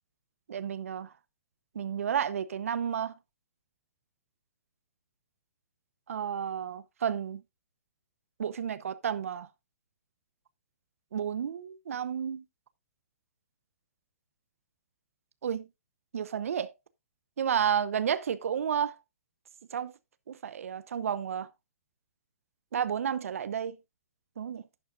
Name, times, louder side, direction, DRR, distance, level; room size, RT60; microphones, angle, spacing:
voice 1, 0.5-1.1 1.7-3.1 6.1-7.4 8.4-9.5 11.1-12.4 15.4-15.7 16.1-16.7 17.4-19.0 19.7-19.9 20.3-21.5 22.7-23.8 24.4-24.6, right 8 dB, 65° right, 0.8 m, -31 dB
11.5 x 8.6 x 2.4 m
hypercardioid pair, 175°, 8 cm